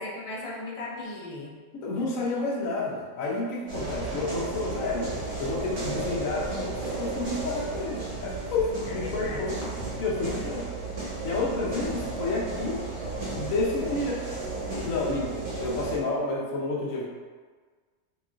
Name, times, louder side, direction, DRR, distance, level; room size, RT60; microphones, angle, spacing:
voice 1, 0.0-1.5 8.9-9.5, left 2 dB, 50° left, -4 dB, 0.4 m, -37 dB
voice 2, 1.8-5.1 5.4-9.6 10.0-10.7 11.2-12.8 13.3-14.2 14.7-17.1, left 3 dB, 70° left, -4 dB, 1.1 m, -30 dB
sound 1, 3.7-16.0, right 2 dB, 50° right, 1.3 m, -34 dB
4.1 x 3.0 x 2.4 m, 1.5 s
omnidirectional pair, 1.5 m